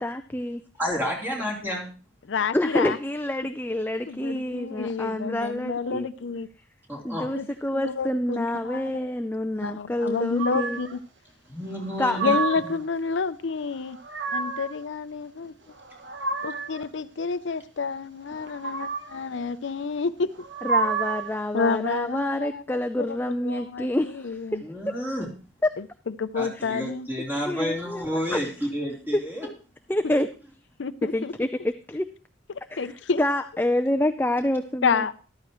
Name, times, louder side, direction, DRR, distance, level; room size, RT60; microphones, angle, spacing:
voice 1, 0.0-0.6 2.5-6.1 7.0-10.8 12.0-12.2 20.6-24.6 27.5-28.4 29.1-29.2 29.9-30.3 31.1-31.5 31.9-32.1 32.7-32.9 33.2-35.1, left 1 dB, 10° left, 0.4 m, -27 dB
voice 2, 0.8-1.9 6.9-7.3 11.5-12.4 12.6-12.8 24.6-25.3 26.4-29.5, equal, 10° right, 3.5 m, -30 dB
voice 3, 2.2-3.0 4.1-6.5 7.3-7.5 7.7-8.9 9.6-11.0 12.2-14.0 14.3-15.5 16.4-20.3 21.5-24.6 25.8-27.1 30.8-31.3 32.5-33.2 34.8-35.1, left 5 dB, 75° left, 0.5 m, -29 dB
sound 1, 10.4-11.0 11.8-12.8 13.8-14.8 15.7-16.8 18.4-19.2 20.3-21.4, right 5 dB, 70° right, 1.3 m, -29 dB
14.0 x 12.5 x 3.1 m
head